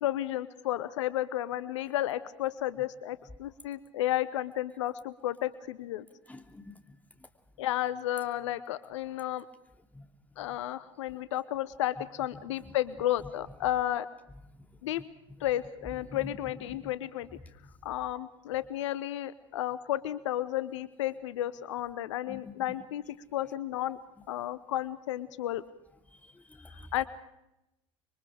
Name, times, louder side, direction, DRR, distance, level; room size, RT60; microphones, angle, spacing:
voice 1, 0.0-6.1 7.6-9.5 10.4-14.1 14.8-15.0 15.4-17.3 17.8-23.0 23.3-24.0 24.3-25.6 26.9-27.0, left 13 dB, 75° left, 16 dB, 0.9 m, -32 dB
voice 2, 6.3-7.0 9.9-10.0 12.3-12.7 16.1-16.3 16.7-16.9 22.3-22.5 26.1-26.9, left 2 dB, 10° left, 6 dB, 2.8 m, -48 dB
26.5 x 23.5 x 4.9 m, 0.89 s
hypercardioid pair, 75°, 15 cm